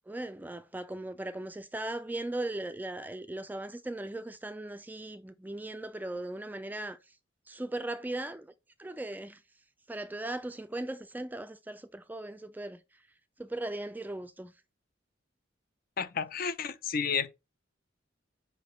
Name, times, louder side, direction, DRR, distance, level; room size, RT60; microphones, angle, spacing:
voice 1, 0.1-7.0 7.5-8.5 8.8-9.4 9.9-12.8 13.4-14.5, right 1 dB, 10° right, 0.3 m, -38 dB
voice 2, 16.0-17.3, left 6 dB, 50° left, 0.6 m, -31 dB
5.6 x 3.4 x 5.3 m
head